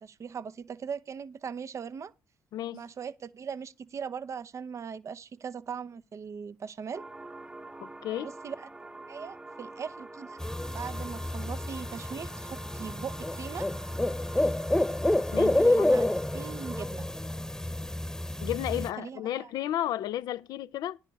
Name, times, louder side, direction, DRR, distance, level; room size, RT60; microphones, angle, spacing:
voice 1, 0.0-2.1 2.7-7.0 8.1-8.7 9.1-10.4 10.7-13.7 15.4-16.0 16.3-17.1 18.7-19.5, right 6 dB, 50° right, 0.7 m, -40 dB
voice 2, 2.5-2.8 7.8-8.3 15.3-15.9 18.4-21.0, left 12 dB, 80° left, 0.6 m, -33 dB
sound 1, 6.9-16.8, right 2 dB, 15° right, 0.8 m, -46 dB
sound 2, 10.4-18.9, left 1 dB, 10° left, 1.1 m, -29 dB
10.5 x 4.9 x 8.2 m
cardioid pair, 85°, 7 cm